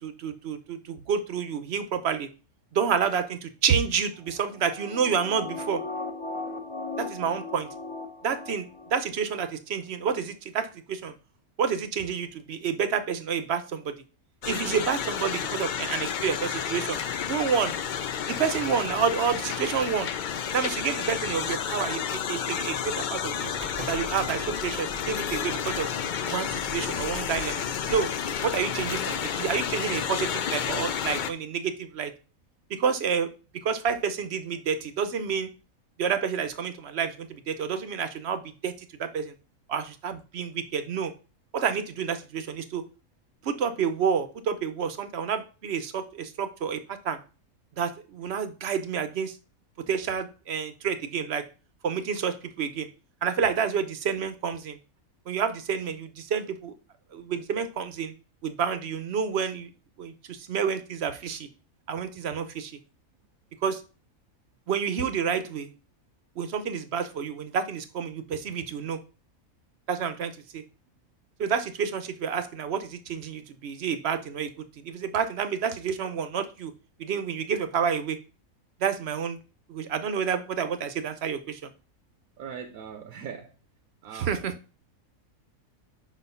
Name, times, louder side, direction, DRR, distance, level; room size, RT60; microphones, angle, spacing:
voice 1, 0.0-2.3 2.7-5.8 7.0-7.7 8.2-8.7 8.9-11.1 11.6-13.9 14.4-17.0 17.3-17.7 18.3-20.1 20.5-23.5 23.9-25.9 26.3-28.1 28.4-32.1 32.8-33.3 33.6-35.5 36.0-38.7 39.0-39.3 39.7-41.1 41.5-42.8 43.4-47.2 47.8-49.4 49.9-51.4 51.8-52.9 53.2-54.8 55.3-56.7 57.1-58.1 58.4-59.7 60.0-61.5 61.9-62.7 63.6-63.8 64.7-65.7 66.4-69.0 69.9-70.6 71.4-74.5 74.8-76.7 77.0-78.2 78.8-79.4 79.7-81.7 84.1-84.5, right 7 dB, 55° right, 0.8 m, -29 dB
sound 1, 4.2-9.0 9.4-9.5, left 3 dB, 30° left, 0.7 m, -37 dB
sound 2, 14.4-31.3, left 8 dB, 85° left, 0.4 m, -31 dB
sound 3, 23.5-27.4, right 1 dB, 30° right, 0.9 m, -43 dB
voice 2, 82.4-83.6 84.0-84.4, right 7 dB, 80° right, 1.1 m, -40 dB
5.3 x 4.2 x 5.4 m
omnidirectional pair, 1.5 m